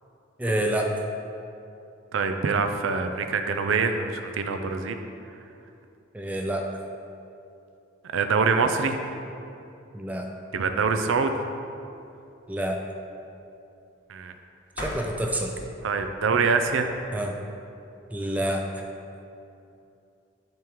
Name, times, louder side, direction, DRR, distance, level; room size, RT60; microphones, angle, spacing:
voice 1, 0.4-0.9 6.1-6.7 9.9-10.2 12.5-12.8 14.8-15.5 17.1-17.3 18.1-18.7, right 1 dB, 10° right, 2 dB, 0.4 m, -27 dB
voice 2, 2.1-5.0 8.1-9.0 10.5-11.3 14.1-14.3 15.8-16.9, right 5 dB, 75° right, 7 dB, 0.4 m, -24 dB
sound 1, 14.7-17.5, left 1 dB, 55° left, 1.2 m, -41 dB
10.5 x 3.6 x 3.0 m, 2.7 s
head